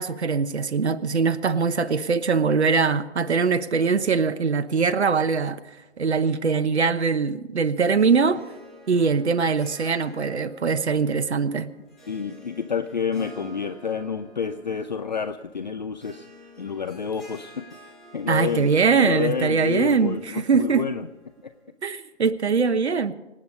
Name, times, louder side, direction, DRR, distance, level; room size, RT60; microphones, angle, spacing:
voice 1, 0.0-5.6 6.0-8.4 8.9-11.7 18.3-20.9 21.8-23.1, right 5 dB, 65° right, 11 dB, 1.1 m, -22 dB
Harp, 7.9-21.6, equal, ahead, 3.1 m, -50 dB
voice 2, 12.1-16.3 16.6-21.1 21.4-21.5, left 6 dB, 40° left, 11 dB, 0.6 m, -29 dB
25.5 x 8.7 x 5.3 m, 1.1 s
figure-of-eight pair, 155°, 36 cm